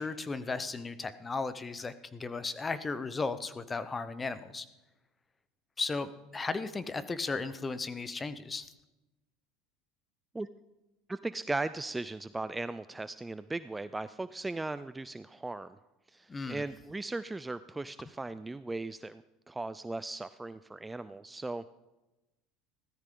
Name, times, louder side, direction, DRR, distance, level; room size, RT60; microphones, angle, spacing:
voice 1, 0.0-4.7 5.8-8.7 16.3-16.6, left 3 dB, 20° left, 14 dB, 0.8 m, -35 dB
voice 2, 11.1-15.8 16.1-21.7, right 2 dB, 10° right, 14 dB, 0.4 m, -38 dB
16.5 x 13.5 x 3.8 m, 1.0 s
supercardioid pair, 115°, 0 cm